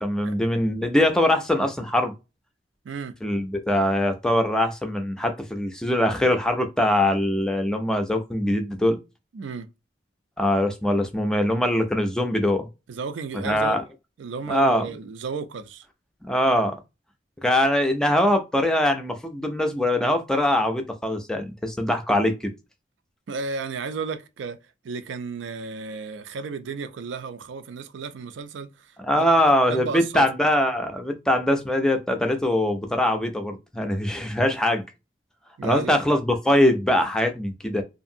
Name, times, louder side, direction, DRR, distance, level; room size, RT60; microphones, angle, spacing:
voice 1, 0.0-2.1 3.2-9.0 10.4-12.7 13.4-13.8 14.5-14.8 16.3-16.7 17.4-22.3 29.0-34.8 35.6-37.8, left 1 dB, 5° left, 0.3 m, -22 dB
voice 2, 9.3-9.7 12.9-13.8 14.2-15.9 23.3-24.6 24.8-29.3 29.7-30.3 35.6-36.0, right 5 dB, 85° right, 0.4 m, -33 dB
2.7 x 2.5 x 2.6 m
head